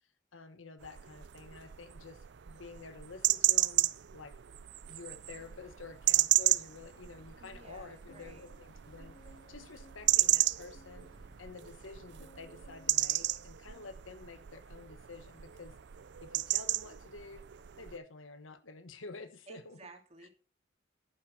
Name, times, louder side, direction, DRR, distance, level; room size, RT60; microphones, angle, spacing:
voice 1, 0.3-4.3 4.9-9.2 9.5-11.1 11.4-15.8 16.2-17.5 17.8-19.8 20.2-20.3, left 4 dB, 85° left, 10 dB, 1.2 m, -50 dB
sound 1, 0.8-18.0, right 16 dB, 60° right, 0.5 m, -33 dB
sound 2, 5.0-7.4 7.7-7.8 8.1-14.1 14.4-14.8, left 1 dB, 50° left, 2.1 m, -63 dB
sound 3, 5.2-11.9, equal, 25° left, 2.8 m, -68 dB
voice 2, 7.4-8.4 19.5-20.3, right 3 dB, 35° right, 3 dB, 2.4 m, -54 dB
11.0 x 10.0 x 4.3 m, 0.36 s
head